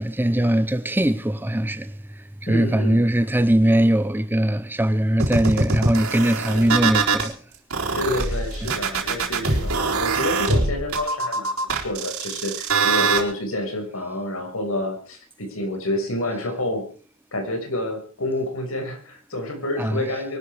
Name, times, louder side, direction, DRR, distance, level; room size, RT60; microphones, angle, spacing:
voice 1, 0.0-1.9 2.4-7.4 8.6-8.7 19.8-20.0, right 1 dB, 10° right, 0.7 m, -21 dB
voice 2, 2.5-3.0 8.0-16.8 17.3-20.4, left 1 dB, 75° left, 6.0 m, -28 dB
sound 1, 5.2-7.3 7.7-13.2, right 4 dB, 90° right, 4.3 m, -23 dB
23.5 x 12.5 x 4.9 m
head